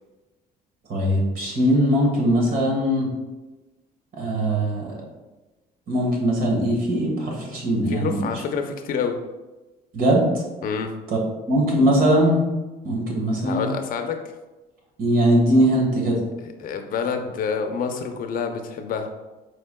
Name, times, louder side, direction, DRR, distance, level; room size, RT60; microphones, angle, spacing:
voice 1, 0.9-3.1 4.2-4.9 5.9-8.3 9.9-10.2 11.5-12.4 12.8-13.7 15.0-16.2, equal, 60° right, 0 dB, 1.4 m, -20 dB
voice 2, 7.9-9.2 10.6-10.9 13.4-14.2 16.4-19.1, left 6 dB, 55° left, 5 dB, 0.6 m, -27 dB
4.9 x 4.5 x 2.2 m, 1.1 s
cardioid pair, 110°, 17 cm